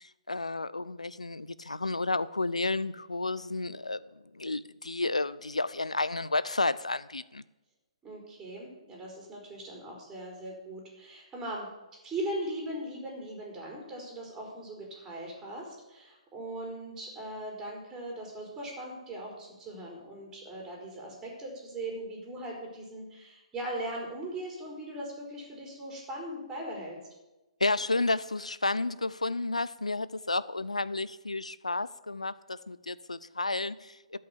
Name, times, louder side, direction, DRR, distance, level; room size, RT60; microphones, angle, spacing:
voice 1, 0.0-7.4 27.6-34.2, left 2 dB, 90° left, 17 dB, 0.5 m, -31 dB
voice 2, 8.0-11.7 12.0-27.0, right 1 dB, 15° right, -1 dB, 4.2 m, -39 dB
12.5 x 5.5 x 8.4 m, 1.0 s
figure-of-eight pair, 130°, 3 cm